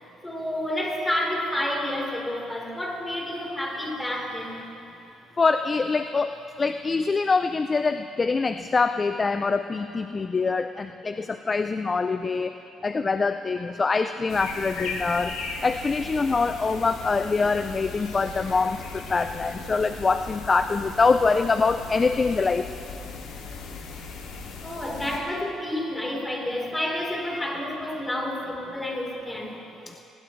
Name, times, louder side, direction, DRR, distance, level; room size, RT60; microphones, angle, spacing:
voice 1, 0.2-4.6 24.6-29.6, left 1 dB, 10° left, -1 dB, 3.9 m, -29 dB
voice 2, 5.4-15.3 15.6-22.7 29.9-30.0, left 4 dB, 30° left, 9 dB, 0.5 m, -24 dB
sound 1, 14.3-25.2, left 4 dB, 80° left, 2.4 m, -37 dB
22.0 x 19.5 x 3.2 m, 2.7 s
cardioid pair, 95°, 0 cm